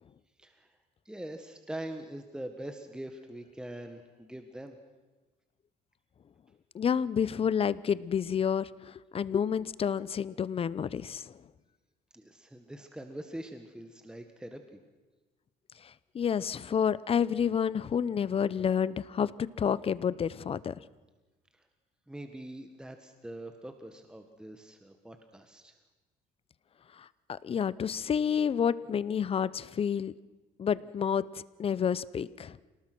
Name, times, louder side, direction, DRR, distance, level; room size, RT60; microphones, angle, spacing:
voice 1, 1.0-4.8 12.1-14.8 21.6-21.7 22.1-25.7, right 1 dB, 5° right, 6 dB, 1.5 m, -43 dB
voice 2, 6.7-11.4 15.8-20.7 27.0-30.1 30.6-31.3 31.6-32.6, left 7 dB, 35° left, 18 dB, 0.7 m, -29 dB
27.5 x 19.0 x 6.2 m, 1.2 s
cardioid pair, 110°, 17 cm